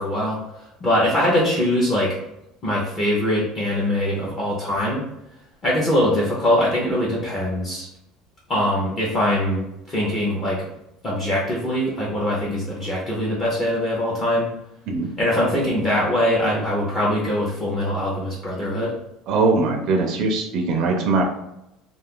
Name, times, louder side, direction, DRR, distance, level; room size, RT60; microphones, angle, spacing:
voice 1, 0.0-2.2 2.6-5.0 5.6-7.9 8.5-10.7 11.0-14.5 15.2-18.9, left 1 dB, 25° left, -6 dB, 0.6 m, -22 dB
voice 2, 19.3-21.2, right 3 dB, 45° right, 2 dB, 0.4 m, -21 dB
2.4 x 2.4 x 3.6 m, 0.84 s
cardioid pair, 170°, 0 cm